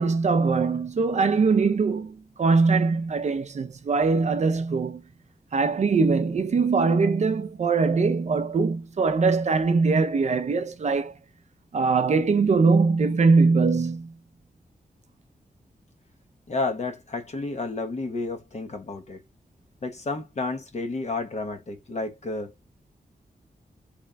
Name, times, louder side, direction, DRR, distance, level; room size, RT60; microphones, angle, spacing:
voice 1, 0.0-5.0 5.5-11.1 11.7-14.1, right 4 dB, 50° right, 0.5 m, -22 dB
voice 2, 16.5-19.2 19.8-22.5, left 3 dB, 50° left, 0.9 m, -31 dB
3.7 x 3.1 x 2.2 m
wide cardioid pair, 175°, 15 cm